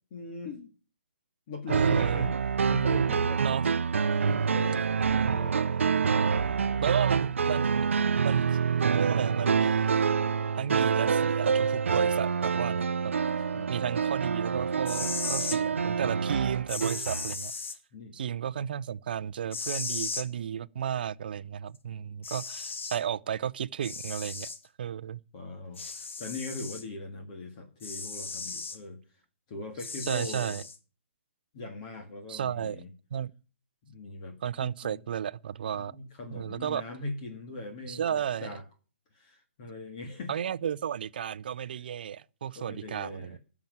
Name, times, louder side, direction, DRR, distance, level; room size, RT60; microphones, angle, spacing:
voice 1, 0.1-0.7 1.5-2.4 2.6-3.4 4.0-5.6 6.7-7.3 13.5-13.7 17.9-18.2 25.3-29.0 29.5-30.6 31.5-32.9 33.8-35.0 35.7-38.6 39.1-40.3 42.5-43.4, left 2 dB, 30° left, 1.8 m, -40 dB
voice 2, 1.7-2.3 3.4-3.7 6.8-7.9 8.2-8.6 8.9-10.1 10.6-12.9 13.7-17.5 18.1-24.5 24.8-25.2 30.1-30.6 32.3-32.8 33.1-33.3 34.4-35.9 36.3-36.8 37.9-38.5 40.3-43.4, right 9 dB, 50° right, 0.6 m, -33 dB
sound 1, 1.7-17.3, right 6 dB, 85° right, 0.6 m, -27 dB
sound 2, 14.7-15.6 16.7-17.8 19.5-20.3 21.8-21.9 22.2-23.0 23.8-24.6 25.8-26.8 27.8-28.8 29.8-30.8, left 4 dB, 75° left, 1.9 m, -36 dB
13.0 x 6.0 x 9.3 m
hypercardioid pair, 165°, 7 cm